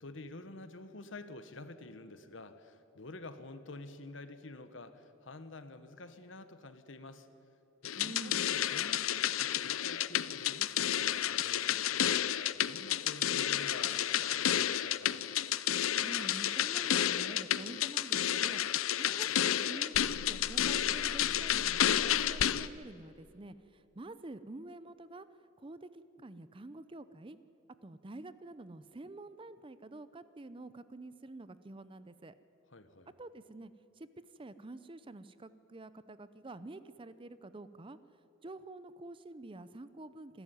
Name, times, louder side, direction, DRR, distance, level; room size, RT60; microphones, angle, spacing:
voice 1, 0.0-7.3 7.8-15.2 32.7-33.1, left 2 dB, 65° left, 10 dB, 1.3 m, -49 dB
sound 1, 7.9-22.7, left 10 dB, 85° left, 0.6 m, -31 dB
voice 2, 8.0-8.4 15.9-18.6 19.0-23.5 24.0-25.3 25.6-27.4 27.8-32.3 33.2-33.7 34.0-34.1 34.4-38.0 38.4-40.4, right 2 dB, 25° right, 14 dB, 0.6 m, -48 dB
27.5 x 12.0 x 9.3 m, 3.0 s
head